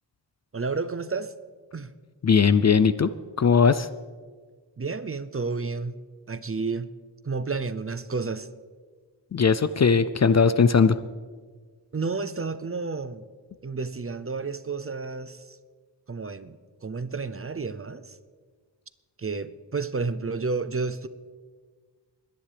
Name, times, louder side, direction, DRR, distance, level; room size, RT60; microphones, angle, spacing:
voice 1, 0.5-1.3 1.7-1.9 4.8-6.0 6.3-6.9 7.2-8.5 11.9-13.2 13.6-15.6 16.1-18.2 19.2-21.1, right 4 dB, 30° right, 13 dB, 0.5 m, -31 dB
voice 2, 2.2-3.1 3.4-3.9 9.3-11.0, left 5 dB, 40° left, 14 dB, 0.4 m, -19 dB
22.0 x 10.0 x 3.4 m, 1.5 s
wide cardioid pair, 70°, 43 cm